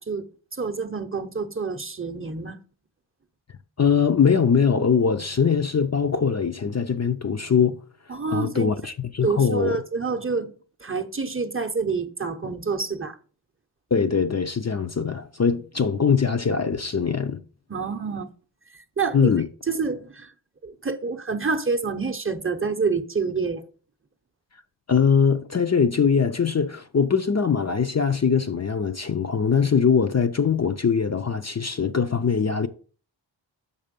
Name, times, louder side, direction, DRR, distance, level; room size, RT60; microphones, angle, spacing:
voice 1, 0.0-2.6 8.1-8.8 9.2-10.5 10.8-13.2 17.7-18.3 19.0-19.3 19.7-20.3 20.6-23.6, right 4 dB, 30° right, 0.7 m, -27 dB
voice 2, 3.8-7.8 8.3-9.8 13.9-17.4 19.1-19.5 24.9-32.7, left 6 dB, 35° left, 0.5 m, -22 dB
6.7 x 5.5 x 5.1 m
wide cardioid pair, 85°, 46 cm